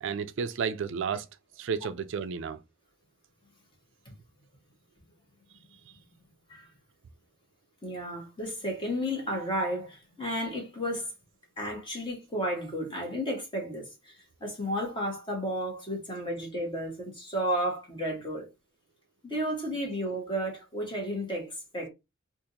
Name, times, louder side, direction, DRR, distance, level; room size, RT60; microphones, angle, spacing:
voice 1, 0.0-1.3 1.6-2.6 5.9-6.0, right 6 dB, 65° right, 0.4 m, -32 dB
voice 2, 7.8-11.1 11.6-18.5 19.2-21.9, equal, 25° left, 1.5 m, -33 dB
3.7 x 2.5 x 2.8 m
head